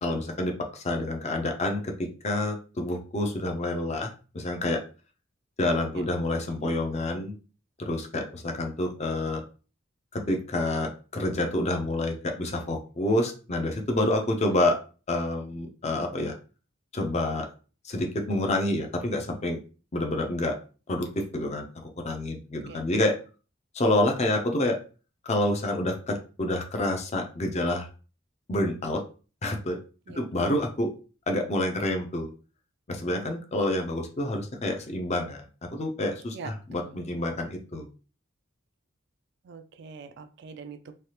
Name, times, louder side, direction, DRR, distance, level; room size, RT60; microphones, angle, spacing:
voice 1, 0.0-4.8 5.6-7.3 7.8-9.4 10.1-14.8 15.1-16.3 16.9-17.5 17.8-19.6 19.9-20.5 20.9-21.7 22.0-23.2 23.7-24.8 25.2-27.9 28.5-29.0 29.4-29.8 30.1-30.9 31.3-32.3 32.9-35.4 35.7-37.9, left 1 dB, 35° left, 3 dB, 0.5 m, -28 dB
voice 2, 39.4-41.1, right 5 dB, 55° right, 10 dB, 0.3 m, -43 dB
3.2 x 2.4 x 2.8 m, 0.36 s
head